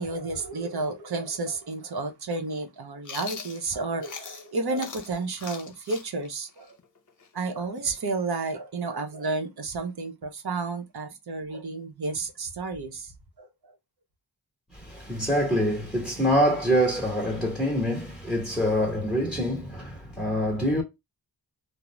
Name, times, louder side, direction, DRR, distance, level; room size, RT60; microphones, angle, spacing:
voice 1, 0.0-6.8 7.3-13.1 13.4-13.5, right 3 dB, 65° right, 0.8 m, -31 dB
Chewing mastication, 3.0-4.5 4.8-8.4, left 6 dB, 45° left, 0.6 m, -41 dB
voice 2, 14.7-20.8, equal, ahead, 1.0 m, -25 dB
2.4 x 2.0 x 2.9 m
cardioid pair, 55°, 42 cm